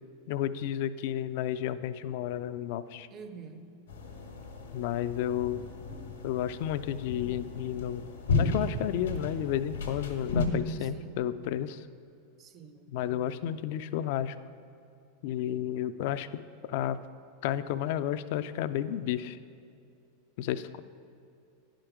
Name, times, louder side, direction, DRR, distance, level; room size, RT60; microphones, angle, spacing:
voice 1, 0.3-3.1 4.7-5.6 6.2-8.0 8.3-11.8 12.9-14.4 15.2-17.0 17.4-19.4 20.4-20.8, left 11 dB, 60° left, 14 dB, 0.3 m, -32 dB
voice 2, 3.1-3.7 10.8-11.3 12.4-13.4 20.7-20.8, right 5 dB, 35° right, 8 dB, 0.6 m, -48 dB
sound 1, 3.9-10.5, left 3 dB, 85° left, 1.3 m, -34 dB
10.0 x 5.1 x 5.9 m, 2.5 s
hypercardioid pair, 100°, 0 cm